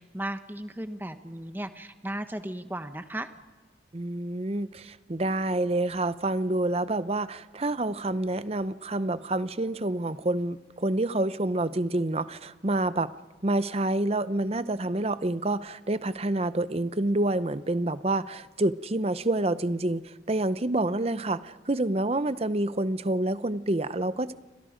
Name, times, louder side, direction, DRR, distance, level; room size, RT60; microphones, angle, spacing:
voice 1, 0.0-3.3, right 1 dB, 10° right, 9 dB, 1.1 m, -35 dB
voice 2, 3.9-13.1 13.4-24.3, right 2 dB, 35° right, 14 dB, 0.7 m, -28 dB
29.5 x 25.5 x 5.1 m, 1.3 s
head